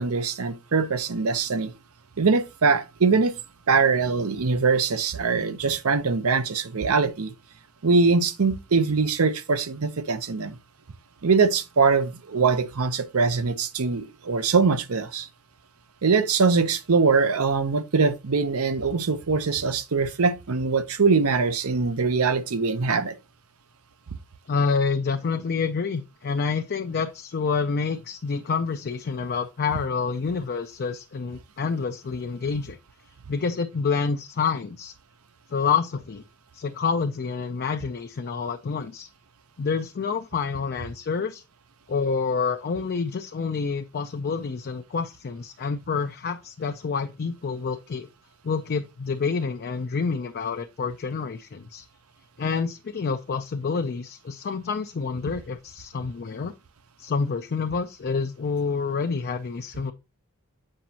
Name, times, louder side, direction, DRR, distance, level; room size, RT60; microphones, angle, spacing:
voice 1, 0.0-1.7 2.2-3.4 3.7-7.3 7.8-10.6 11.2-15.3 16.0-23.2, right 4 dB, 75° right, 0.7 m, -22 dB
voice 2, 24.5-32.8 33.3-34.9 35.5-36.2 36.5-39.1 39.6-41.4 41.9-48.1 48.4-51.9 52.4-56.5 57.0-59.9, left 5 dB, 45° left, 0.4 m, -28 dB
7.6 x 5.1 x 2.8 m
head